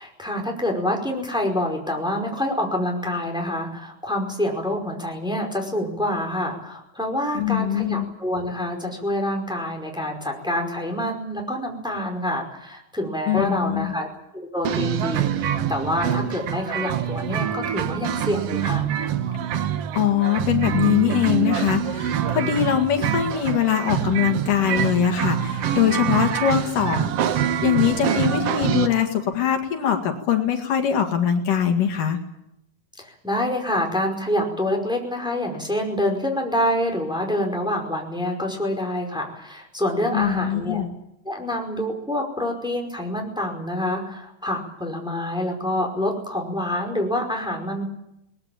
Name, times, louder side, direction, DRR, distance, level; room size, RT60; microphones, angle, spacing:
voice 1, 0.0-14.1 14.3-18.9 33.0-40.8 41.2-47.8, left 1 dB, ahead, 1 dB, 4.9 m, -26 dB
voice 2, 7.3-8.1 13.3-13.9 19.9-27.1 27.6-32.2 40.1-40.9, left 9 dB, 75° left, 4 dB, 3.7 m, -22 dB
sound 1, 14.7-28.9, right 10 dB, 60° right, 1.7 m, -25 dB
22.5 x 20.5 x 8.9 m, 0.83 s
omnidirectional pair, 3.8 m